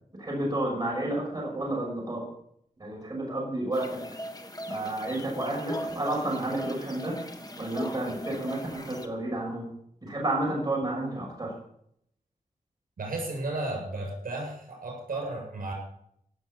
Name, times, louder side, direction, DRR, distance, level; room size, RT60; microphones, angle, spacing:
voice 1, 0.2-2.3 2.8-4.0 4.7-7.2 7.6-9.7 10.0-11.5, right 1 dB, 25° right, -2 dB, 6.0 m, -31 dB
sound 1, 3.7-9.1, equal, 25° left, 1.7 m, -39 dB
voice 2, 13.0-15.7, right 2 dB, 80° right, 0 dB, 7.8 m, -34 dB
17.0 x 7.8 x 7.3 m, 0.71 s
wide cardioid pair, 100°, 14 cm